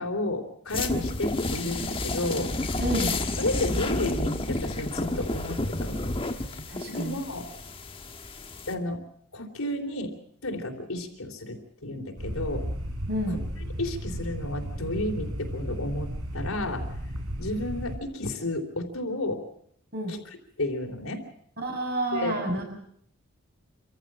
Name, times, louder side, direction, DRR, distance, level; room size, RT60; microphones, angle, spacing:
voice 1, 0.0-2.5 3.4-6.0 6.8-7.5 8.7-9.0 9.3-10.1 10.4-12.7 13.3-13.4 13.8-16.8 17.4-19.4 20.1-21.2 22.1-22.4, left 1 dB, 70° left, 3 dB, 3.4 m, -32 dB
sound 1, 0.7-8.7, left 2 dB, 25° left, 1.4 m, -30 dB
voice 2, 2.8-3.1 6.7-7.2 13.1-13.4 19.9-20.1 21.6-22.6, right 1 dB, 45° right, 2 dB, 6.8 m, -29 dB
sound 2, 12.2-18.0, equal, 90° right, 4.3 m, -34 dB
26.5 x 15.0 x 7.6 m, 0.69 s
head